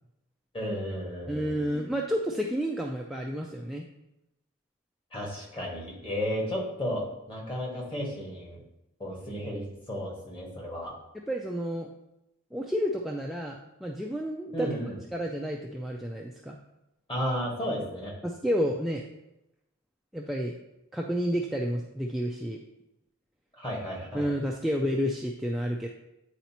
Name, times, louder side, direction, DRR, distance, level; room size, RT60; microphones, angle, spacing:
voice 1, 0.5-1.7 5.1-8.6 9.0-10.9 14.5-14.9 17.1-18.1 23.6-24.2, equal, 25° left, -2 dB, 1.7 m, -33 dB
voice 2, 1.3-3.8 11.3-11.9 12.5-14.7 15.1-16.6 18.2-19.0 20.1-20.5 20.9-22.6 24.1-25.9, equal, ahead, -1 dB, 0.3 m, -30 dB
9.3 x 4.0 x 2.9 m, 0.88 s
head